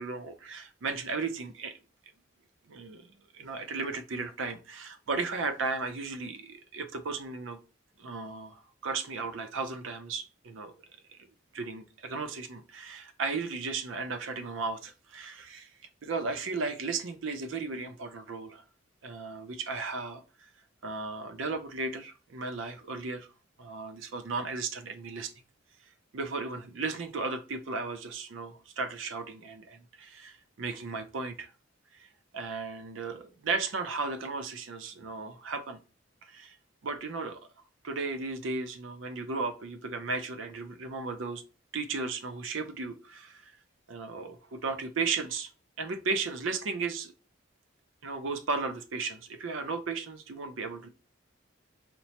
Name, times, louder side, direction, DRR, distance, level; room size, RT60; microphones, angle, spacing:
voice 1, 0.0-1.8 2.7-3.1 3.3-7.6 8.0-10.7 11.5-15.7 16.0-18.6 19.0-20.2 20.8-23.3 23.6-25.3 26.1-31.5 31.9-32.1 32.3-35.8 36.2-36.6 36.8-37.4 37.8-41.4 41.7-43.5 43.9-45.5 45.8-47.1 48.0-50.9, right 4 dB, 75° right, 0.5 m, -35 dB
4.3 x 2.1 x 2.8 m
head